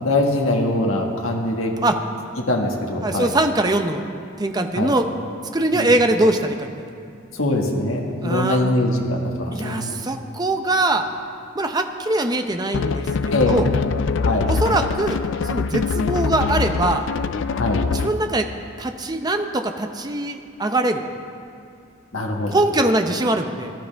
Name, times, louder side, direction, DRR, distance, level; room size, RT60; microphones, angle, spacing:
voice 1, 0.0-1.7 2.5-3.3 4.7-4.9 5.7-5.9 7.3-10.0 13.3-13.6 14.2-14.5 17.5-17.8 22.1-22.5, left 2 dB, 85° left, 0 dB, 1.7 m, -22 dB
voice 2, 3.0-4.0 4.4-5.0 5.5-6.9 8.2-8.7 9.5-11.1 11.5-13.7 14.5-17.1 17.9-18.5 18.8-21.0 22.5-23.7, right 2 dB, 20° right, 6 dB, 0.7 m, -22 dB
sound 1, 12.7-18.3, left 5 dB, 60° left, 0.4 m, -23 dB
20.0 x 12.0 x 3.5 m, 2.4 s
head